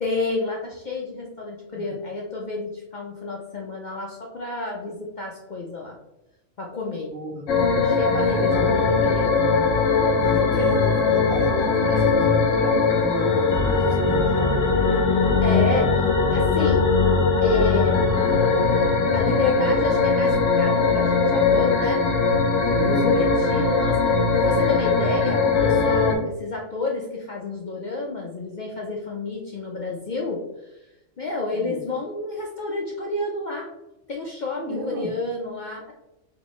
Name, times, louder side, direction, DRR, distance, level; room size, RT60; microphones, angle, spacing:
voice 1, 0.0-6.0 6.6-7.1 7.8-9.4 11.8-12.2 15.4-16.9 17.4-18.1 18.6-22.0 22.6-30.8 31.2-33.7 34.1-35.9, left 3 dB, 55° left, -1 dB, 0.5 m, -30 dB
voice 2, 7.1-7.4 8.2-8.7 10.1-14.7 22.6-23.3 31.5-31.8 34.5-35.1, right 2 dB, 70° right, 0 dB, 1.2 m, -33 dB
sound 1, 7.5-26.1, left 4 dB, 80° left, 1.0 m, -20 dB
4.2 x 2.9 x 3.0 m, 0.94 s
omnidirectional pair, 1.3 m